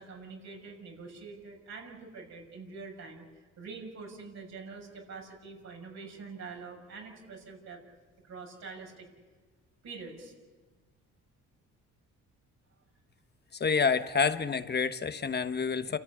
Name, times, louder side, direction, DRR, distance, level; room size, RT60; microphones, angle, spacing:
voice 1, 0.0-3.2 3.6-7.8 8.2-9.1 9.8-10.3 14.1-14.2, right 4 dB, 60° right, -1 dB, 6.5 m, -45 dB
voice 2, 13.5-16.0, left 5 dB, 35° left, 11 dB, 1.2 m, -28 dB
29.0 x 14.5 x 9.6 m, 1.3 s
cardioid pair, 90°, 30 cm